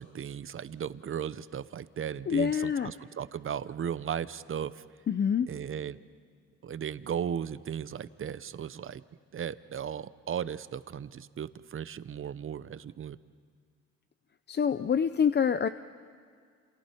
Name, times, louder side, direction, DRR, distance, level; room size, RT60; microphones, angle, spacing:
voice 1, 0.0-4.8 5.5-6.0 6.6-9.0 9.3-13.2, right 8 dB, 45° right, 15 dB, 0.8 m, -36 dB
voice 2, 2.3-2.9 5.1-5.5 14.5-15.7, left 7 dB, 35° left, 12 dB, 0.6 m, -26 dB
29.5 x 28.0 x 4.5 m, 2.1 s
cardioid pair, 90°, 30 cm